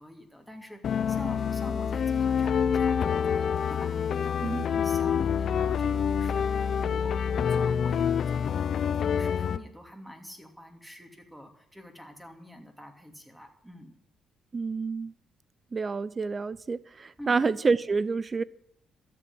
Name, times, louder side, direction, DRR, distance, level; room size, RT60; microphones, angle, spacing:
voice 1, 0.0-14.0 17.2-17.4, equal, 5° right, 2.7 m, -46 dB
sound 1, 0.8-9.6, left 7 dB, 60° left, 0.7 m, -27 dB
voice 2, 14.5-15.1 15.7-18.4, right 4 dB, 35° right, 0.6 m, -28 dB
13.0 x 7.7 x 9.7 m
cardioid pair, 90°, 0 cm